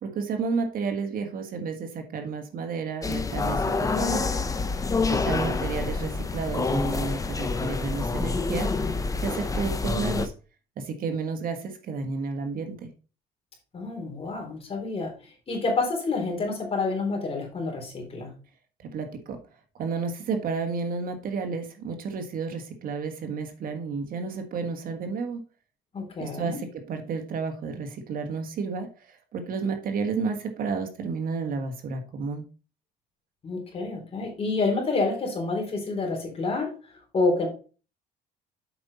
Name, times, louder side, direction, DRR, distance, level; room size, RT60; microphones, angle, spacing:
voice 1, 0.0-3.6 4.0-4.2 5.1-10.3 10.8-12.9 18.8-19.4 19.8-25.4 26.2-28.9 29.3-32.4, right 5 dB, 55° right, 6 dB, 1.5 m, -31 dB
sound 1, 3.0-10.3, left 3 dB, 20° left, 0.8 m, -27 dB
voice 2, 4.8-5.4 13.7-18.3 25.9-26.6 33.4-37.5, left 3 dB, 35° left, 2 dB, 3.8 m, -29 dB
7.8 x 5.3 x 4.2 m, 0.35 s
cardioid pair, 110°, 17 cm